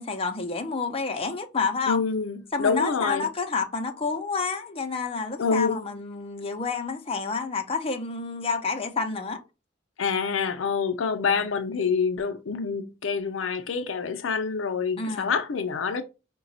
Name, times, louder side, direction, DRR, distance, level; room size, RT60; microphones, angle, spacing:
voice 1, 0.0-2.0 2.5-9.4 11.3-11.4 15.0-15.3, left 4 dB, 30° left, 0.6 m, -29 dB
voice 2, 1.9-3.3 5.4-5.8 10.0-16.0, left 5 dB, 75° left, 0.5 m, -26 dB
4.8 x 2.3 x 3.9 m
head